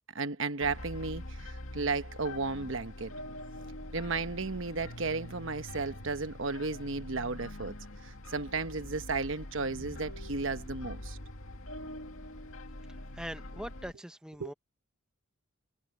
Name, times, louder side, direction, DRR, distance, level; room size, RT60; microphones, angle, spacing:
voice 1, 0.1-3.1 3.9-7.7 8.0-11.2 14.4-14.5, right 4 dB, 65° right, 1.1 m, -34 dB
sound 1, 0.6-13.9, left 1 dB, 75° left, 2.3 m, -44 dB
voice 2, 13.1-14.5, equal, 5° right, 1.0 m, -42 dB
head